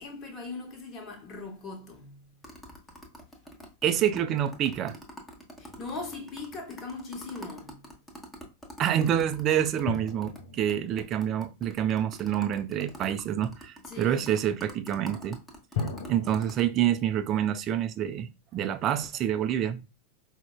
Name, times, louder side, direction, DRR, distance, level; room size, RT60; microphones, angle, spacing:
voice 1, 0.0-2.3 5.6-7.9 13.9-14.2, left 3 dB, 30° left, 1.0 m, -40 dB
sound 1, 2.4-10.4 10.7-10.8 11.0-16.6, equal, 5° left, 0.9 m, -45 dB
voice 2, 3.8-5.0 8.8-15.4 16.1-19.9, right 10 dB, 30° right, 0.3 m, -27 dB
sound 2, 5.7-7.0 9.8-12.4 15.7-16.7, left 5 dB, 55° left, 0.5 m, -38 dB
4.8 x 2.1 x 2.3 m
figure-of-eight pair, 90°, 0 cm